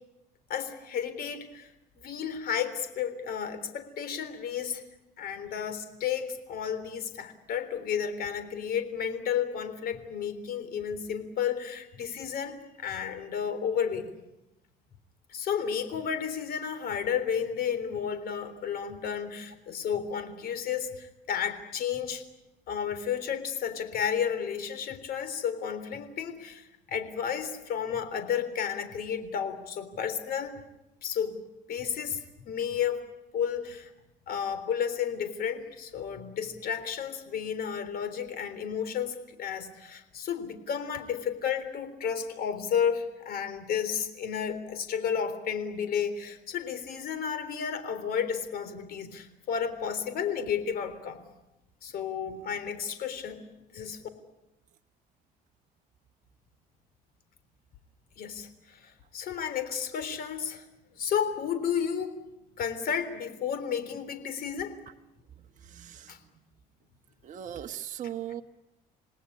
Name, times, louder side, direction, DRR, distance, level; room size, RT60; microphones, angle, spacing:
voice 1, 0.5-1.7 2.0-4.8 5.2-14.1 15.3-22.2 22.7-30.6 31.0-31.4 31.7-33.0 33.3-33.9 34.3-51.2 51.8-53.4 53.7-54.0 58.2-60.6 61.0-62.2 62.6-64.8 66.1-66.2, left 7 dB, 65° left, 11 dB, 3.7 m, -32 dB
voice 2, 65.6-66.1 67.2-68.4, right 10 dB, 50° right, 4 dB, 1.3 m, -38 dB
28.0 x 18.5 x 9.8 m, 0.95 s
cardioid pair, 110°, 17 cm